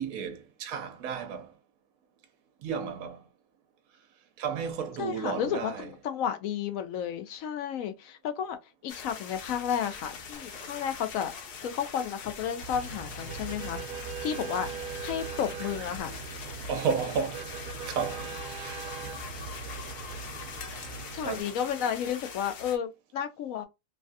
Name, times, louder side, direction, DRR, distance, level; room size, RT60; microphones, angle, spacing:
voice 1, 0.0-1.5 2.6-3.2 4.4-5.9 16.7-17.5 17.9-18.8 21.2-21.6, right 6 dB, 70° right, 1.1 m, -33 dB
voice 2, 5.0-8.6 8.8-11.3 11.6-13.8 14.2-14.7 15.0-16.1 21.1-23.7, left 8 dB, 70° left, 0.9 m, -32 dB
sound 1, 8.9-22.8, left 5 dB, 85° left, 1.3 m, -43 dB
sound 2, 10.3-13.2 16.0-16.1, left 2 dB, 45° left, 1.1 m, -56 dB
sound 3, 12.6-21.4, right 5 dB, 90° right, 1.2 m, -40 dB
3.2 x 2.3 x 2.6 m
omnidirectional pair, 1.6 m